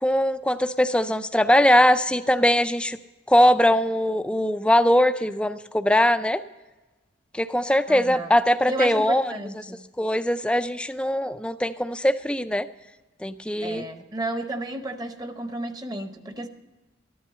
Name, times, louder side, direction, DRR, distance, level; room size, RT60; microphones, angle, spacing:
voice 1, 0.0-3.0 3.3-6.4 7.3-9.2 10.0-12.7 13.2-13.8, equal, 5° left, 11 dB, 0.4 m, -21 dB
voice 2, 7.9-8.3 8.7-9.8 13.6-16.5, right 1 dB, 20° right, 8 dB, 0.9 m, -32 dB
13.5 x 11.0 x 5.5 m, 1.2 s
head